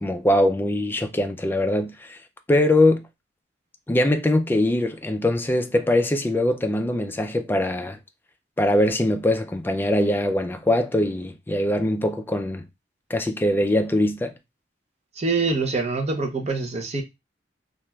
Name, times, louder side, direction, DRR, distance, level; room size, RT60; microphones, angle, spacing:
voice 1, 0.0-2.2 2.5-3.0 3.9-8.0 8.6-12.6 13.1-14.3, left 1 dB, 10° left, 0.3 m, -22 dB
voice 2, 15.2-17.0, right 3 dB, 35° right, 0.5 m, -25 dB
3.1 x 2.4 x 2.2 m
head